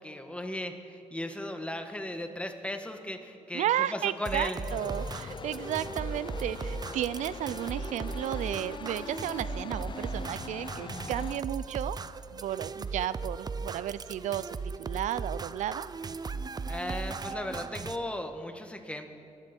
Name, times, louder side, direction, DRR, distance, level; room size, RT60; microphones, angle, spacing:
voice 1, 0.0-4.6 16.7-19.1, left 1 dB, 10° left, 6 dB, 1.6 m, -36 dB
voice 2, 3.5-12.0 12.3-14.5 14.8-15.9, right 12 dB, 75° right, 17 dB, 0.4 m, -33 dB
sound 1, 4.2-18.0, right 4 dB, 30° right, 0.6 m, -37 dB
sound 2, 4.7-11.4, left 6 dB, 40° left, 0.5 m, -42 dB
24.0 x 13.0 x 4.5 m, 2.7 s
cardioid pair, 65°, 12 cm